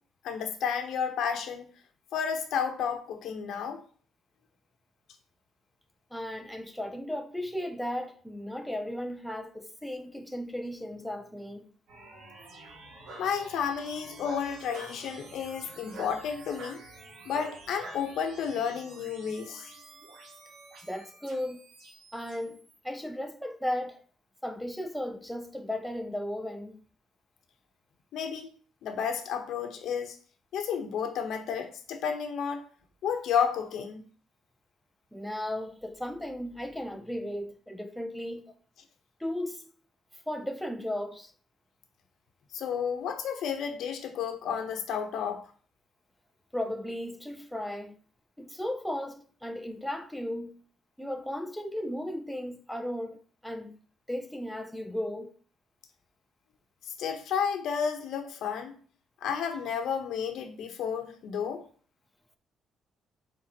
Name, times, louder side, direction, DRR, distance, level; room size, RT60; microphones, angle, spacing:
voice 1, 0.2-1.7 2.1-3.8 13.2-16.8 17.3-19.7 28.1-28.5 28.8-30.2 30.5-32.6 33.0-34.0 42.5-45.5 56.9-58.8 59.2-61.6, left 7 dB, 70° left, 0.9 m, -32 dB
voice 2, 6.1-11.7 20.8-21.7 22.1-24.0 24.4-26.8 35.1-38.5 39.2-39.7 40.3-41.3 46.5-47.9 48.4-50.5 51.0-53.8 54.1-55.3, left 1 dB, ahead, 0.4 m, -35 dB
Bark, 10.9-11.5 13.0-13.3 14.2-15.0 15.9-16.2 16.6-16.8 17.3-18.0, right 2 dB, 60° right, 1.5 m, -44 dB
sound 1, 11.9-22.8, right 2 dB, 80° right, 2.0 m, -51 dB
9.4 x 3.7 x 2.9 m
cardioid pair, 165°, 0 cm